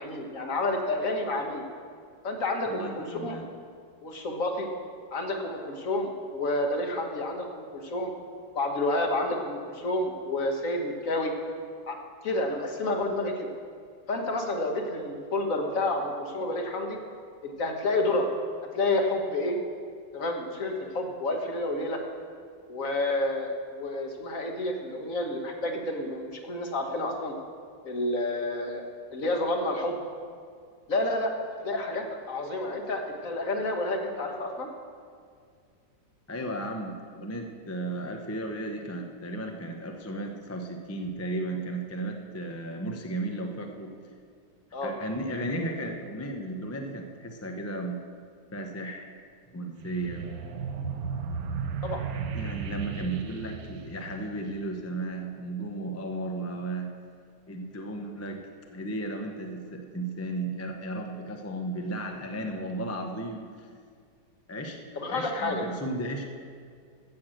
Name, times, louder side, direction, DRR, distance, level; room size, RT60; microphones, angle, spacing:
voice 1, 0.0-1.7 2.2-3.4 4.0-4.7 5.1-8.1 8.5-11.3 11.9-12.0 12.2-13.5 14.1-17.0 17.4-18.3 18.7-19.6 20.1-22.0 22.7-27.3 27.8-28.8 29.1-30.0 30.9-31.3 31.6-34.7 44.7-44.9 51.8-52.0 64.9-65.6, left 2 dB, 50° left, 3 dB, 1.5 m, -29 dB
voice 2, 2.6-3.5 36.3-43.9 44.8-48.0 48.5-49.1 49.5-50.2 52.3-56.9 57.5-58.4 58.7-63.7 64.5-64.8 65.1-66.3, right 1 dB, 20° left, 3 dB, 0.4 m, -34 dB
sound 1, 49.8-54.8, right 6 dB, 60° right, 1.1 m, -35 dB
14.5 x 6.4 x 7.6 m, 2.1 s
omnidirectional pair, 2.0 m